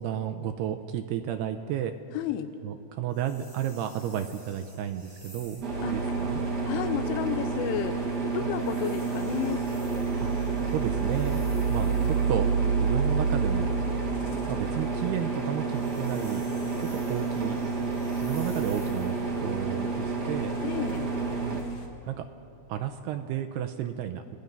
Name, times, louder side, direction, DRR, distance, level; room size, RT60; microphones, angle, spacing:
voice 1, 0.0-1.9 2.6-6.4 8.4-8.5 10.2-10.3 10.7-11.4 11.7-12.5 12.7-13.7 14.5-16.5 16.8-17.6 18.2-20.5 21.4-21.6 22.1-22.2 22.7-24.4, right 10 dB, 80° right, 7 dB, 2.4 m, -32 dB
voice 2, 2.1-2.5 5.8-6.1 6.6-9.7 20.6-21.1, left 10 dB, 90° left, 9 dB, 3.3 m, -32 dB
sound 1, 3.1-5.8 8.5-12.3 15.5-19.2, left 1 dB, 15° left, 7.2 m, -53 dB
sound 2, 5.6-21.6, right 4 dB, 60° right, 1.0 m, -31 dB
sound 3, 5.7-21.9, right 5 dB, 50° left, 2.3 m, -32 dB
29.5 x 18.0 x 5.5 m, 2.8 s
omnidirectional pair, 5.4 m